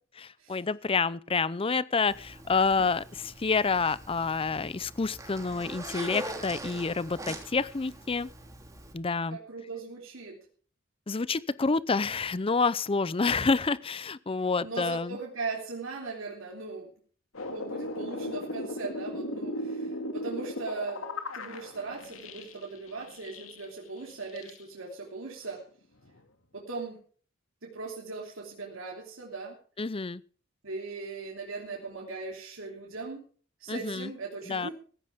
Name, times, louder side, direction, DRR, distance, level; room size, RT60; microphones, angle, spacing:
voice 1, 0.2-8.3 8.9-9.4 11.1-15.2 29.8-30.2 33.7-34.1 34.5-34.7, left 4 dB, 25° left, 19 dB, 0.5 m, -28 dB
Zipper (clothing), 2.1-8.9, right 1 dB, 15° right, 3.1 m, -42 dB
voice 2, 9.3-10.4 14.6-16.9 17.5-25.6 26.5-27.0 27.6-29.6 30.6-33.2 33.6-34.7, right 4 dB, 80° right, -1 dB, 3.2 m, -39 dB
sound 1, 17.3-23.7 24.1-24.6 26.0-26.2, left 1 dB, 90° left, 2.3 m, -37 dB
15.5 x 14.5 x 3.6 m, 0.43 s
head